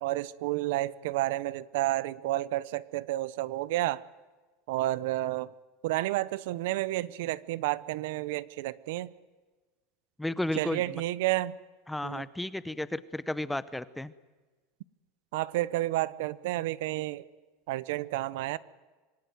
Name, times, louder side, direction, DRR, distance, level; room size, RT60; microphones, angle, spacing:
voice 1, 0.0-4.0 4.7-5.5 5.8-9.1 10.6-11.5 12.0-12.2 15.3-17.3 17.7-18.6, right 16 dB, 70° right, 19 dB, 0.8 m, -30 dB
voice 2, 10.2-11.0 11.9-14.1, left 1 dB, 5° left, 16 dB, 0.7 m, -33 dB
26.0 x 19.5 x 9.3 m, 1.3 s
supercardioid pair, 160°, 0 cm